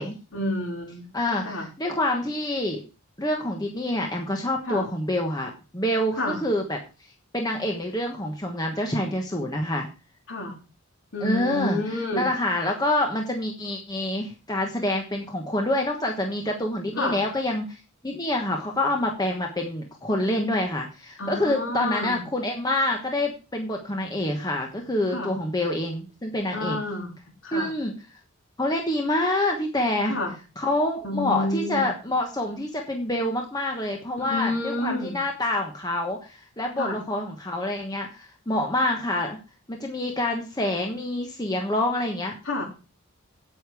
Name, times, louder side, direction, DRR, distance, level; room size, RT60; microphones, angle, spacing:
voice 1, 0.0-1.1 1.4-1.7 4.7-4.9 6.2-6.4 10.3-10.5 11.1-12.3 17.0-17.2 21.2-22.2 25.1-25.4 26.5-27.1 27.4-27.7 30.1-30.3 31.0-31.9 34.2-35.2 36.8-37.0 42.5-42.6, left 1 dB, 60° left, 0 dB, 3.5 m, -29 dB
voice 2, 1.1-2.8 3.2-6.8 7.3-9.9 11.2-26.8 27.5-27.9 28.6-30.2 30.6-39.4 39.7-42.3, left 1 dB, 20° left, 2 dB, 1.2 m, -27 dB
8.8 x 8.2 x 4.8 m, 0.32 s
head